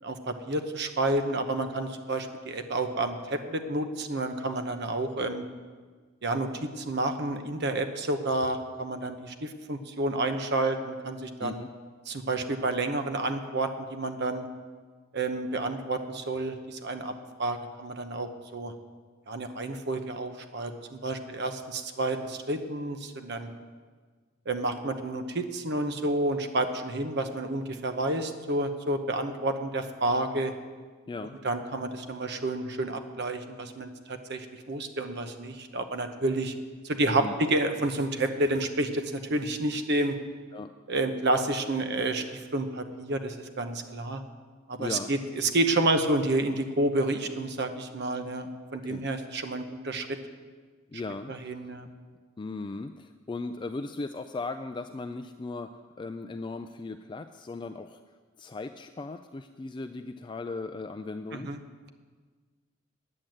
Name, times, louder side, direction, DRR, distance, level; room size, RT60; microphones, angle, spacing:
voice 1, 0.0-5.5 6.2-11.6 12.1-14.5 15.1-17.1 17.4-18.7 19.3-23.5 24.5-30.5 31.4-36.5 36.8-40.2 40.9-44.2 44.7-50.2 51.3-51.9 61.3-61.6, right 2 dB, 55° right, 7 dB, 0.9 m, -30 dB
voice 2, 31.1-31.4 37.2-37.3 40.5-40.7 44.8-45.1 48.7-49.0 50.9-51.3 52.4-58.0 58.4-61.6, left 3 dB, 25° left, 8 dB, 0.3 m, -37 dB
9.9 x 9.0 x 7.7 m, 1.5 s
head